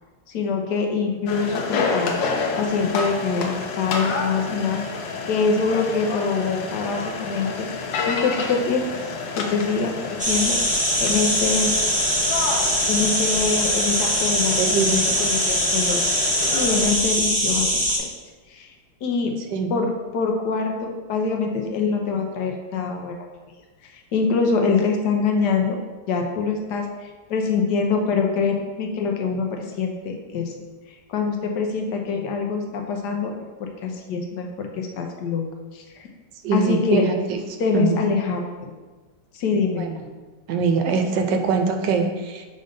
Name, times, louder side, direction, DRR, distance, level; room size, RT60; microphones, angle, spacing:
voice 1, 0.3-2.1 2.6-4.8 5.3-8.9 9.4-10.6 11.0-11.7 12.9-16.0 16.5-17.7 18.0-18.1 18.5-18.7 19.0-19.3 19.7-23.2 24.1-25.8 26.1-30.5 31.1-33.3 33.6-35.4 35.7-36.1 36.5-37.0 37.6-38.7 39.3-39.9, left 5 dB, 70° left, 2 dB, 1.3 m, -24 dB
sound 1, 1.3-16.9, left 4 dB, 90° left, 1.5 m, -29 dB
sound 2, 10.2-18.0, equal, 5° right, 0.8 m, -22 dB
voice 2, 14.6-15.2 19.5-19.7 36.4-37.4 37.7-38.0 39.8-40.0 40.5-42.5, right 5 dB, 80° right, 5 dB, 1.2 m, -23 dB
5.3 x 3.9 x 5.2 m, 1.3 s
omnidirectional pair, 2.0 m